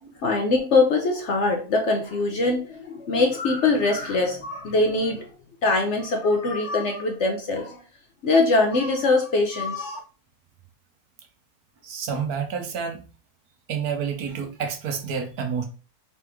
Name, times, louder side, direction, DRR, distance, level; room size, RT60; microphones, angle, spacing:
voice 1, 0.2-5.3 5.6-7.8 8.2-10.0, left 3 dB, 60° left, 0.8 m, -22 dB
voice 2, 11.8-13.0 13.7-15.6, right 6 dB, 70° right, 1.2 m, -29 dB
4.1 x 3.1 x 3.4 m
omnidirectional pair, 1.7 m